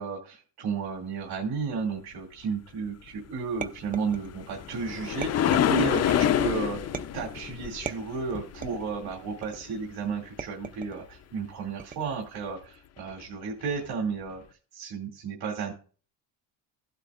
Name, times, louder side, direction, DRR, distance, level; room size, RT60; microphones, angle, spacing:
voice 1, 0.0-6.8 7.1-14.4 14.7-15.7, right 5 dB, 60° right, -1 dB, 2.6 m, -33 dB
sound 1, 3.6-4.5 5.2-6.1 6.9-7.4 7.9-8.9 9.4-9.8 10.4-11.0 11.8-12.3, right 6 dB, 20° right, 0.4 m, -39 dB
sound 2, 3.9-9.2 13.1-13.2 13.8-13.9, left 10 dB, 40° left, 0.5 m, -27 dB
15.5 x 8.1 x 2.5 m, 0.40 s
cardioid pair, 135°, 43 cm